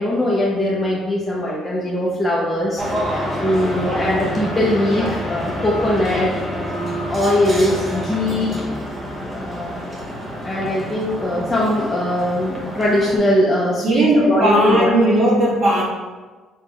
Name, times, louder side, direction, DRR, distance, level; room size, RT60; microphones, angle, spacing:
voice 1, 0.0-8.9 9.3-9.8 10.4-14.9, left 1 dB, 10° left, -6 dB, 0.6 m, -21 dB
sound 1, 2.8-13.2, equal, 20° right, 0.8 m, -28 dB
voice 2, 13.8-15.8, right 1 dB, 45° right, -5 dB, 1.3 m, -16 dB
5.0 x 3.0 x 2.3 m, 1.3 s
cardioid pair, 125°, 0 cm